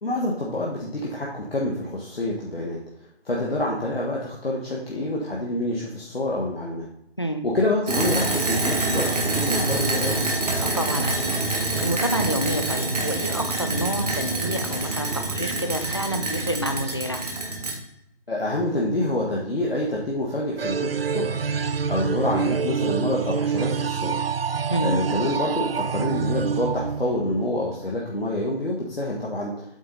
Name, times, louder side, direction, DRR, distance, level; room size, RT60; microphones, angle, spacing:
voice 1, 0.0-6.9 7.4-10.2 18.3-21.4 21.9-24.2 24.8-29.6, left 1 dB, 65° left, -3 dB, 1.7 m, -27 dB
sound 1, 7.9-17.7, right 2 dB, 35° right, 1.5 m, -26 dB
voice 2, 10.6-17.2 24.7-25.0, equal, 25° left, 6 dB, 0.5 m, -28 dB
sound 2, 20.6-27.6, right 6 dB, 65° right, 0.5 m, -26 dB
8.3 x 6.9 x 4.0 m, 0.81 s
figure-of-eight pair, 155°, 32 cm